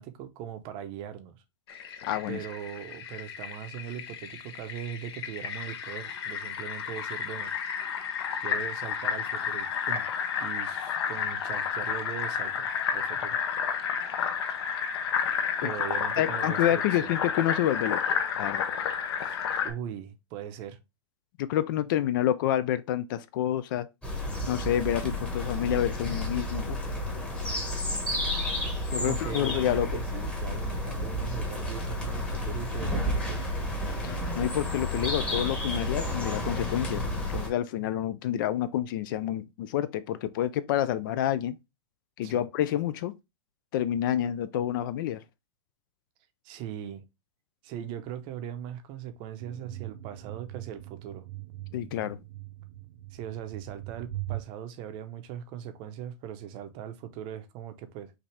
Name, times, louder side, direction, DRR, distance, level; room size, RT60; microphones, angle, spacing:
voice 1, 0.0-1.4 2.3-7.5 8.4-13.4 15.6-17.1 19.2-20.8 28.9-33.5 42.2-42.5 46.4-47.0 47.6-51.3 53.1-58.1, right 9 dB, 30° right, 0.7 m, -40 dB
Fill (with liquid), 1.7-19.7, left 7 dB, 60° left, 0.9 m, -31 dB
voice 2, 2.1-2.4 15.6-15.7 16.2-18.0 18.4-18.7 21.4-23.9 24.5-26.8 28.9-29.9 34.0-37.0 37.3-41.6 42.2-43.1 43.7-45.2 51.7-52.2, left 11 dB, 45° left, 0.4 m, -28 dB
City garden in the rain, 24.0-37.5, left 1 dB, 5° left, 1.1 m, -31 dB
sound 1, 49.4-54.4, right 16 dB, 75° right, 0.6 m, -41 dB
5.8 x 2.7 x 3.2 m
supercardioid pair, 155°, 15 cm